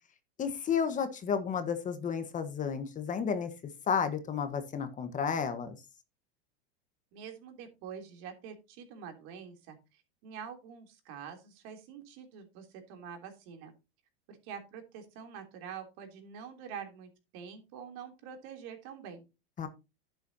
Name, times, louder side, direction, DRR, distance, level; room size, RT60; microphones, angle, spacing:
voice 1, 0.4-3.5 3.9-5.8 19.6-19.7, left 6 dB, 25° left, 9 dB, 1.3 m, -32 dB
voice 2, 7.1-13.7 14.3-19.2, right 7 dB, 55° right, 5 dB, 3.3 m, -46 dB
11.0 x 9.3 x 2.8 m, 0.27 s
supercardioid pair, 130°, 30 cm